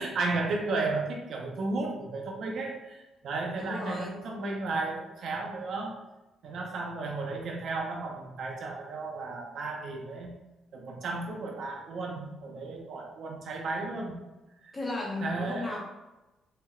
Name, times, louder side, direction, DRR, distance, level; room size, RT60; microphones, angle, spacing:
voice 1, 0.0-6.0 6.4-10.3 10.7-14.2 14.6-14.7 15.2-15.7, right 3 dB, 65° right, 0 dB, 0.8 m, -34 dB
voice 2, 3.6-4.2 14.7-15.9, left 2 dB, 20° left, -2 dB, 1.1 m, -35 dB
4.2 x 3.5 x 2.4 m, 1.0 s
cardioid pair, 90°, 0 cm